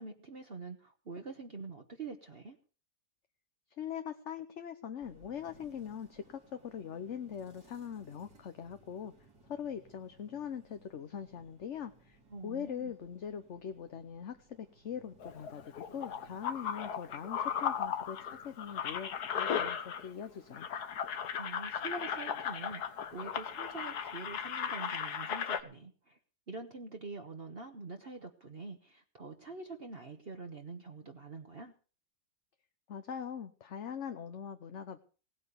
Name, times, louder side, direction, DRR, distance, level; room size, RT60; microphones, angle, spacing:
voice 1, 0.0-2.6 12.3-12.9 21.3-26.2 26.5-31.7, right 3 dB, 40° right, 4 dB, 1.4 m, -45 dB
voice 2, 3.8-9.1 9.5-12.2 12.4-20.7 32.9-35.0, left 8 dB, 50° left, 8 dB, 1.1 m, -42 dB
sound 1, 5.0-24.8, right 3 dB, 80° right, 3.7 m, -64 dB
sound 2, 15.2-20.2 20.5-25.6, left 8 dB, 80° left, 1.7 m, -36 dB
17.5 x 8.9 x 6.9 m, 0.39 s
omnidirectional pair, 1.7 m